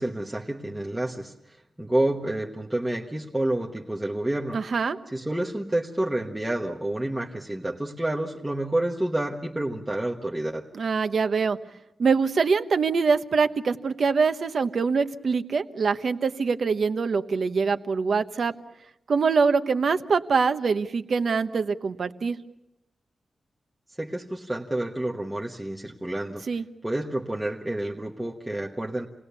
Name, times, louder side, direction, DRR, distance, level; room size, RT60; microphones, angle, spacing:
voice 1, 0.0-4.6 5.1-10.7 24.0-26.4 26.8-29.1, right 1 dB, 10° right, -1 dB, 1.2 m, -29 dB
voice 2, 4.5-5.0 10.7-11.6 12.0-18.5 19.1-22.4 26.5-26.6, right 5 dB, 55° right, 9 dB, 1.1 m, -24 dB
29.0 x 19.5 x 6.9 m, 0.87 s
wide cardioid pair, 170°, 0 cm